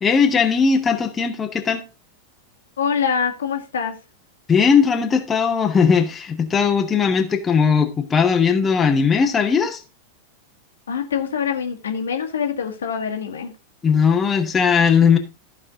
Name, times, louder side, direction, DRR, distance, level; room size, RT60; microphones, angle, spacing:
voice 1, 0.0-1.8 4.5-9.8 13.8-15.2, left 6 dB, 20° left, 1.2 m, -18 dB
voice 2, 2.8-3.9 10.9-13.5, left 7 dB, 65° left, 1.5 m, -24 dB
14.5 x 4.9 x 3.7 m
figure-of-eight pair, 90°, 0 cm